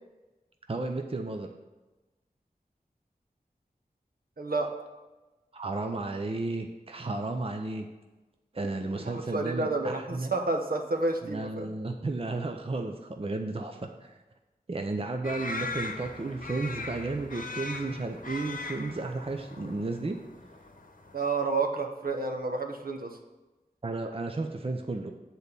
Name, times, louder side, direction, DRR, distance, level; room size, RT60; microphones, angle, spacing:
voice 1, 0.7-1.5 5.5-7.9 8.5-10.3 11.2-14.1 14.7-20.2 23.8-25.1, right 3 dB, 40° right, 4 dB, 0.6 m, -33 dB
voice 2, 4.4-4.7 9.0-11.7 21.1-23.2, right 3 dB, 70° right, 3 dB, 0.9 m, -30 dB
sound 1, 15.2-21.1, left 3 dB, 60° left, 0.9 m, -39 dB
7.9 x 4.1 x 6.8 m, 1.1 s
wide cardioid pair, 55°, 16 cm